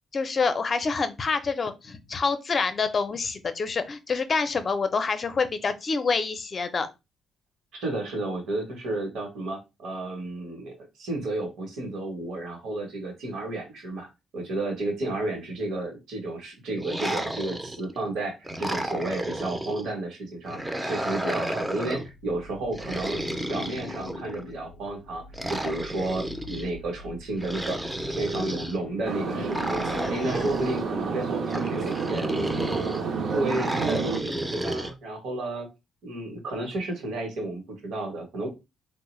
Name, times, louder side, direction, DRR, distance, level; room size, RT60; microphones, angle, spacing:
voice 1, 0.1-6.9 29.9-30.5, left 4 dB, 40° left, 0.5 m, -27 dB
voice 2, 7.7-14.1 14.3-27.8 28.1-32.3 32.6-35.7 36.0-38.5, right 2 dB, 75° right, 1.0 m, -32 dB
sound 1, 16.8-18.0 18.4-19.9 20.5-22.1 22.7-24.4 25.3-26.7 27.4-28.8 29.5-30.8 31.5-33.0 33.5-34.9, right 1 dB, 10° right, 0.5 m, -32 dB
sound 2, 22.1-31.2, left 6 dB, 85° left, 0.4 m, -45 dB
sound 3, 29.0-34.2, right 5 dB, 60° right, 0.5 m, -30 dB
3.4 x 2.1 x 3.0 m
cardioid pair, 90°, 0 cm